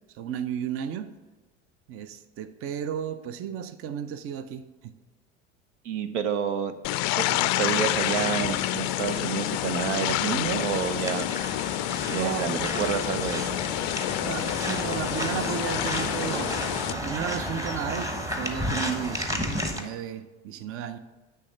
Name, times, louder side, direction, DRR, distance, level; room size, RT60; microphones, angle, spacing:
voice 1, 0.1-1.1 1.9-4.9 12.0-12.8 13.7-13.8 14.2-21.0, right 8 dB, 40° right, 0.6 m, -34 dB
voice 2, 5.8-6.7 7.2-11.3 12.1-13.6, right 7 dB, 75° right, 0.7 m, -29 dB
sound 1, 6.8-16.9, left 16 dB, 50° left, 0.4 m, -28 dB
sound 2, 7.6-19.8, equal, 10° right, 1.1 m, -33 dB
9.6 x 3.3 x 6.7 m
hypercardioid pair, 75°, 36 cm